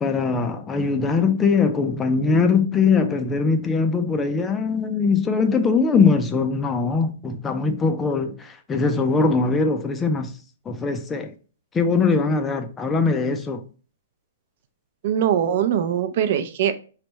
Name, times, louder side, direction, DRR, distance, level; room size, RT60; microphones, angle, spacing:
voice 1, 0.0-10.4 10.7-11.3 11.7-13.6, left 4 dB, 10° left, 0.5 m, -21 dB
voice 2, 15.0-16.8, right 9 dB, 40° right, 0.6 m, -22 dB
5.2 x 3.3 x 3.0 m
hypercardioid pair, 170°, 0 cm